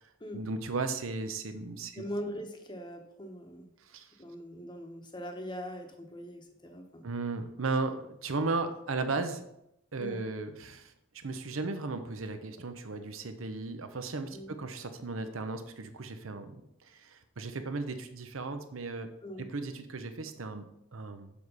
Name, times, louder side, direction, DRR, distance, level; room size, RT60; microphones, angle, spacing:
voice 1, 0.3-2.0 3.9-4.1 7.0-9.4 9.9-10.9 11.2-16.6 16.9-19.1 19.4-21.3, right 3 dB, 80° right, 9 dB, 0.8 m, -35 dB
voice 2, 2.0-3.7 4.2-7.0 10.0-10.2 14.3-14.5 19.2-19.4, equal, 20° left, 4 dB, 1.0 m, -41 dB
7.1 x 4.8 x 5.5 m, 0.81 s
head